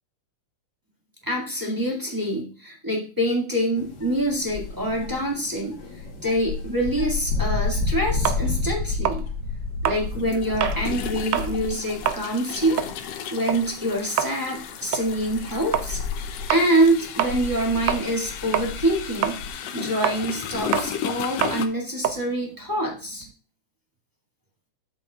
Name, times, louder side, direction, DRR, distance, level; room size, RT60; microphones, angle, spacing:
voice 1, 1.2-9.2 9.8-12.8 13.3-16.0 16.5-23.2, right 1 dB, 10° right, -3 dB, 1.1 m, -25 dB
sound 1, 3.8-12.2 12.6-13.0 13.6-13.7 14.5-19.5, left 4 dB, 55° left, 1.1 m, -31 dB
sound 2, 8.2-10.9 11.2-11.6 11.9-18.3 18.5-23.3, right 10 dB, 85° right, 1.5 m, -28 dB
sound 3, 8.6-8.8 10.1-21.7, left 8 dB, 85° left, 1.4 m, -35 dB
8.2 x 7.8 x 2.4 m, 0.37 s
omnidirectional pair, 3.8 m